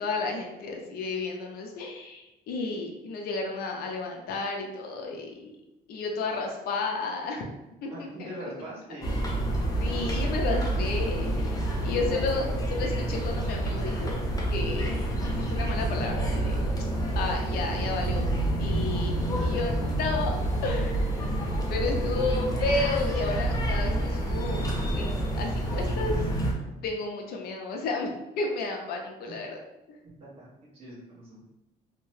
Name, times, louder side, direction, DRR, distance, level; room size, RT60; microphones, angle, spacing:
voice 1, 0.0-5.5 5.9-7.5 7.8-8.5 9.8-14.2 14.5-16.6 17.2-18.3 18.6-20.4 20.6-24.7 24.9-26.2 26.8-28.1 28.4-29.6 29.9-30.0, left 3 dB, 65° left, 2 dB, 0.5 m, -32 dB
voice 2, 7.9-9.2 11.7-12.5 19.3-19.9 24.0-24.1 24.7-25.1 29.3-29.4 30.2-30.5 30.7-31.5, right 1 dB, 35° right, -10 dB, 1.1 m, -43 dB
sound 1, 9.0-26.5, right 1 dB, 20° left, 0.6 m, -28 dB
2.8 x 2.1 x 3.1 m, 0.94 s
cardioid pair, 110°, 17 cm